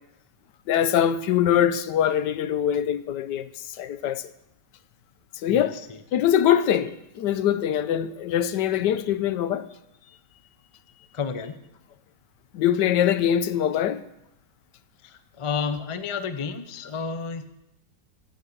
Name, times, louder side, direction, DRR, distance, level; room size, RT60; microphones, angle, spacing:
voice 1, 0.7-3.5 3.8-4.2 5.4-5.8 6.1-9.7 12.5-14.0, left 10 dB, 80° left, 1.3 m, -23 dB
voice 2, 5.5-6.0 11.1-11.6 15.0-17.4, left 5 dB, 45° left, 0.4 m, -31 dB
14.5 x 6.4 x 8.1 m
omnidirectional pair, 1.9 m